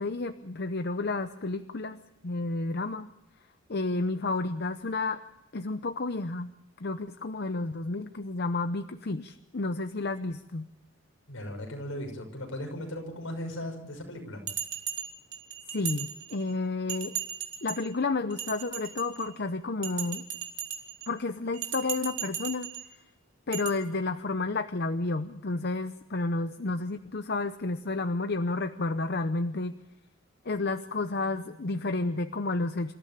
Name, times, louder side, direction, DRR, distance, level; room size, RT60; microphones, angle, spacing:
voice 1, 0.0-3.1 3.7-5.2 5.5-6.5 6.8-10.7 15.7-17.1 17.6-20.2 21.1-22.7 23.5-29.7 30.5-32.9, left 3 dB, 50° left, 9 dB, 0.8 m, -31 dB
voice 2, 11.3-14.4, left 1 dB, 70° left, 2 dB, 6.3 m, -37 dB
Bell, 14.5-16.5 16.9-17.9 18.3-19.3 19.8-21.1 21.5-22.9 23.5-23.7, right 9 dB, 55° right, 3.0 m, -37 dB
27.5 x 14.5 x 8.7 m, 0.90 s
head